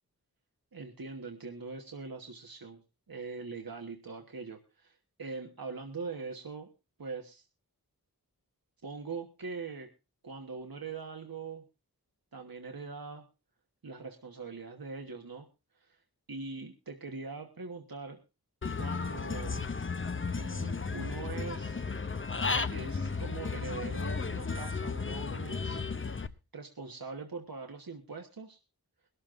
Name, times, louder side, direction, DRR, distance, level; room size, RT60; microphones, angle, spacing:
voice 1, 0.7-2.8 3.1-6.7 7.0-7.5 8.8-9.9 10.2-11.6 12.3-13.2 13.8-15.5 15.7-16.0 16.3-18.2 18.8-19.6 20.3-21.8 22.5-25.8 26.5-28.6, right 4 dB, 70° right, 3 dB, 1.3 m, -42 dB
Human voice / Bird, 18.6-26.3, left 4 dB, 35° left, 0.7 m, -34 dB
21.5 x 12.5 x 2.5 m, 0.27 s
wide cardioid pair, 45°, 37 cm